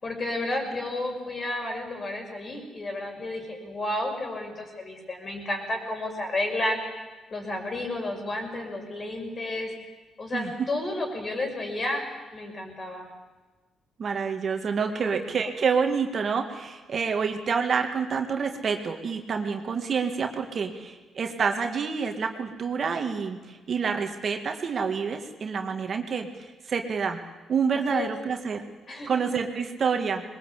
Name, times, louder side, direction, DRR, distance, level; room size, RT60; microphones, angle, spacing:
voice 1, 0.0-6.8 7.3-9.7 10.2-12.0 12.3-13.1 14.9-15.3 27.7-28.1 28.9-29.1, left 1 dB, 35° left, 2 dB, 6.4 m, -31 dB
voice 2, 14.0-26.3 26.7-27.2 27.5-28.6 29.1-30.2, right 6 dB, 50° right, 5 dB, 2.1 m, -28 dB
21.5 x 20.5 x 8.5 m, 1.3 s
cardioid pair, 90°, 0 cm